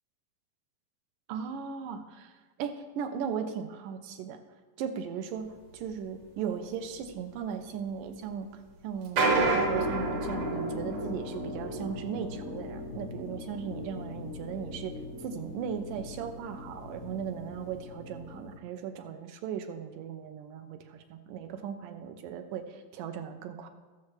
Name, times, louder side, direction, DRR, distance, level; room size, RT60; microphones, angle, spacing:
voice 1, 1.3-2.3 2.6-4.4 4.8-8.5 8.8-23.7, right 7 dB, 80° right, 7 dB, 2.3 m, -37 dB
sound 1, 5.7-5.8 6.2-6.3 6.9-7.1 7.8-8.0 9.0-15.3 15.9-16.1 16.3-16.4 16.9-17.0 17.6-17.7, right 3 dB, 55° right, 1.7 m, -32 dB
sound 2, 9.3-18.6, left 3 dB, 85° left, 1.3 m, -41 dB
19.5 x 7.1 x 3.2 m, 1.3 s
omnidirectional pair, 4.0 m